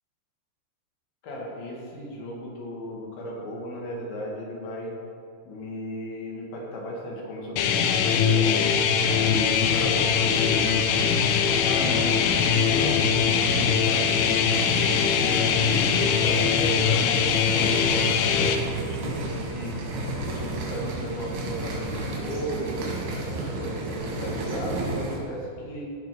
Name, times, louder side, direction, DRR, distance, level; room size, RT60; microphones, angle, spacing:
voice 1, 1.2-5.0 5.5-8.7 9.2-10.8 11.6-17.1 17.4-19.8 20.3-22.9 23.3-25.9, equal, 70° left, -2 dB, 4.1 m, -35 dB
sound 1, 7.6-18.6, left 7 dB, 85° left, 3.3 m, -22 dB
sound 2, 9.0-25.2, right 2 dB, 85° right, 4.5 m, -33 dB
15.5 x 5.3 x 6.2 m, 2.4 s
omnidirectional pair, 5.5 m